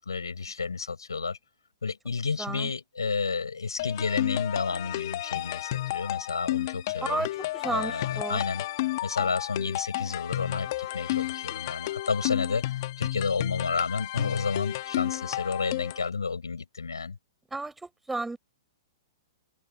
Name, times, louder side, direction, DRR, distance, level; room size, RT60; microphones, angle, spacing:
voice 1, 0.0-1.4 1.8-7.3 7.7-8.6 9.0-17.2, left 5 dB, 85° left, 6.0 m, -31 dB
voice 2, 2.4-2.7 7.1-7.3 7.5-8.4 17.5-17.7 18.1-18.4, right 3 dB, 5° right, 6.3 m, -32 dB
sound 1, 3.8-16.1, left 16 dB, 50° left, 1.3 m, -32 dB
open air
hypercardioid pair, 115°, 2 cm